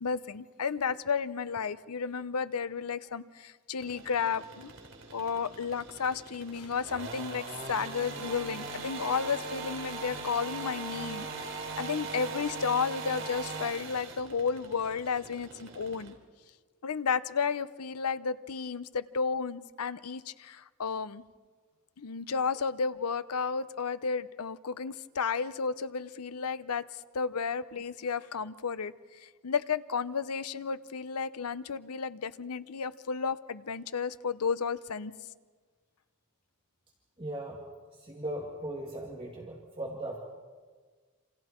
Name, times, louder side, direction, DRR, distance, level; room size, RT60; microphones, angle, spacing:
voice 1, 0.0-4.7 5.1-16.1 16.8-21.2 22.0-35.1, left 5 dB, 85° left, 14 dB, 0.7 m, -33 dB
sound 1, 3.8-16.1, right 4 dB, 55° right, 3.1 m, -40 dB
voice 2, 37.2-37.6 38.0-40.2, right 1 dB, 25° right, -1 dB, 2.2 m, -38 dB
28.0 x 27.0 x 4.5 m, 1.5 s
head